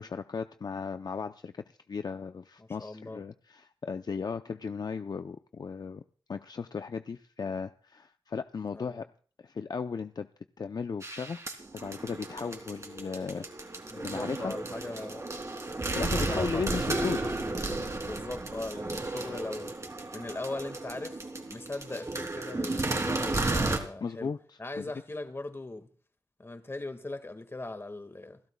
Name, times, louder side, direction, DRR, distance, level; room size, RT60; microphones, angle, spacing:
voice 1, 0.0-6.0 6.3-9.1 9.4-10.3 10.6-11.4 11.7-14.5 15.9-17.2 24.0-24.9, left 5 dB, 60° left, 0.6 m, -36 dB
voice 2, 2.6-3.2 8.7-9.1 13.9-15.3 16.2-19.7 20.1-24.3 24.6-25.9 26.4-28.4, left 2 dB, 30° left, 1.9 m, -40 dB
sound 1, 11.0-23.8, right 2 dB, 40° right, 3.1 m, -33 dB
29.0 x 12.0 x 2.3 m
wide cardioid pair, 75°, 8 cm